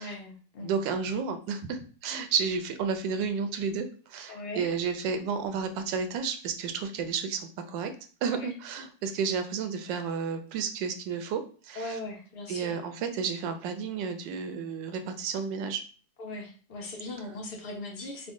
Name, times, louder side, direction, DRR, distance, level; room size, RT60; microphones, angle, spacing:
voice 1, 0.0-0.7 4.3-4.7 8.4-8.5 11.7-12.8 16.2-18.3, left 2 dB, 70° left, 0 dB, 0.5 m, -39 dB
voice 2, 0.6-7.9 8.2-12.0 12.5-15.8, right 6 dB, 85° right, 7 dB, 1.3 m, -32 dB
3.6 x 2.1 x 3.6 m, 0.40 s
omnidirectional pair, 1.9 m